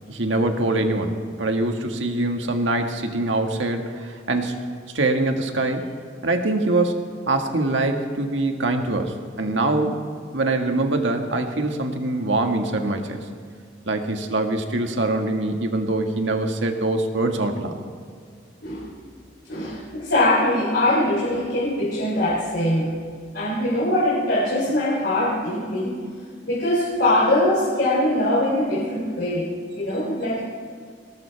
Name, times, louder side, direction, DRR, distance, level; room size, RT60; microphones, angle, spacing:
voice 1, 0.1-4.6 4.9-5.9 6.2-10.0 10.3-13.2 13.9-17.8, right 2 dB, 85° right, 4 dB, 1.7 m, -24 dB
voice 2, 19.5-22.9 23.3-26.0 26.4-30.4, left 1 dB, 60° left, -5 dB, 3.3 m, -22 dB
21.0 x 18.0 x 3.4 m, 2.1 s
head